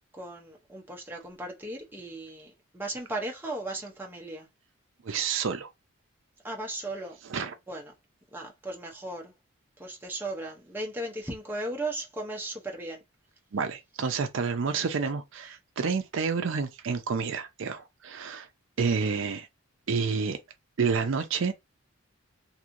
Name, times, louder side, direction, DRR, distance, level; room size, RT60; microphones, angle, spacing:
voice 1, 0.1-4.5 6.4-7.9 8.3-9.3 9.8-13.0, right 2 dB, 10° right, 0.6 m, -37 dB
voice 2, 5.0-5.7 7.3-7.5 13.5-18.5 18.8-19.5 19.9-20.4 20.8-21.5, right 5 dB, 60° right, 0.4 m, -29 dB
3.0 x 2.6 x 2.5 m
head